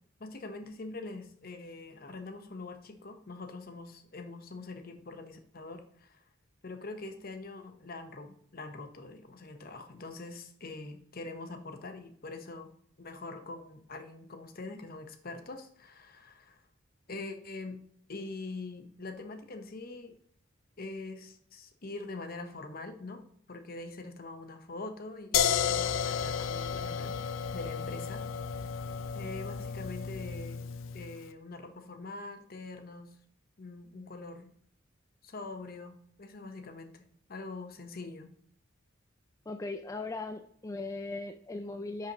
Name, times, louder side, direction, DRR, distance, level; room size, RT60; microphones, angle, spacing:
voice 1, 0.2-6.2 6.6-12.7 13.0-16.6 17.1-17.8 18.1-20.1 20.8-23.2 23.5-28.3 29.1-30.6 30.9-33.1 33.6-34.5 35.2-38.3, left 3 dB, 50° left, 7 dB, 1.0 m, -44 dB
sound 1, 25.3-31.1, left 7 dB, 85° left, 0.5 m, -32 dB
voice 2, 39.5-42.1, left 3 dB, 15° left, 7 dB, 0.3 m, -38 dB
10.0 x 5.7 x 3.0 m, 0.62 s
head